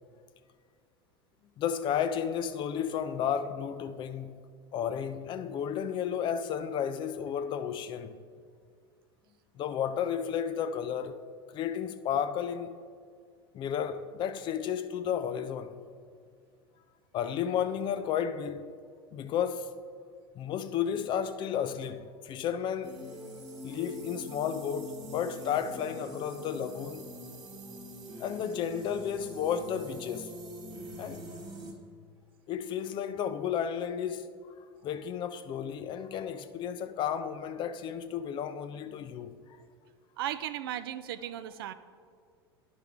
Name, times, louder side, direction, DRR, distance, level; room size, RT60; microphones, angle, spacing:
voice 1, 1.6-4.4 4.7-8.2 9.6-11.2 11.5-12.8 13.5-15.8 17.1-18.7 19.1-19.7 20.3-23.0 23.6-27.0 28.2-30.3 31.0-31.2 32.5-34.4 34.8-39.4, left 8 dB, 35° left, 0.5 m, -32 dB
sound 1, 22.8-31.7, equal, 30° right, 1.3 m, -44 dB
voice 2, 40.2-41.7, right 11 dB, 60° right, 0.4 m, -36 dB
10.5 x 5.7 x 3.6 m
figure-of-eight pair, 80°, 13 cm